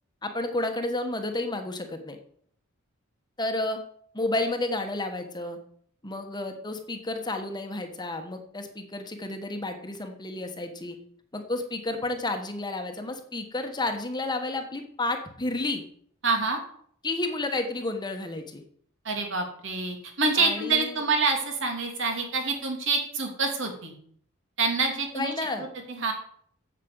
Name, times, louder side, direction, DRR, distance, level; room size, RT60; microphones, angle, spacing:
voice 1, 0.2-2.2 3.4-3.8 4.1-5.6 6.0-11.0 11.3-15.8 17.0-18.6 20.4-21.0 25.1-25.7, left 2 dB, 20° left, 5 dB, 1.2 m, -31 dB
voice 2, 16.2-16.6 19.0-23.9 24.6-25.3 25.9-26.1, right 4 dB, 65° right, 3 dB, 2.8 m, -26 dB
8.4 x 7.4 x 8.0 m, 0.62 s
head